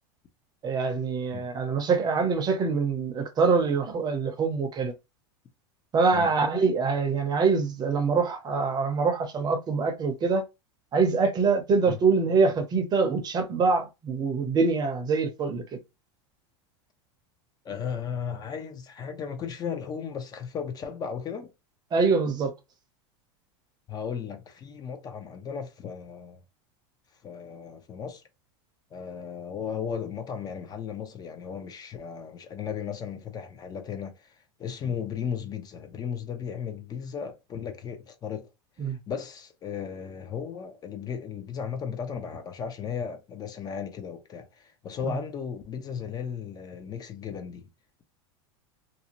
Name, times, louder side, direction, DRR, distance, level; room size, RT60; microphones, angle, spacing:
voice 1, 0.6-4.9 5.9-10.4 10.9-15.6 21.9-22.5 38.8-39.0 45.0-45.1, right 4 dB, 30° right, 0.6 m, -24 dB
voice 2, 17.6-21.5 23.9-26.4 27.2-28.2 28.9-38.5 38.8-47.7, left 7 dB, 30° left, 0.5 m, -35 dB
2.6 x 2.0 x 2.9 m
supercardioid pair, 120°, 14 cm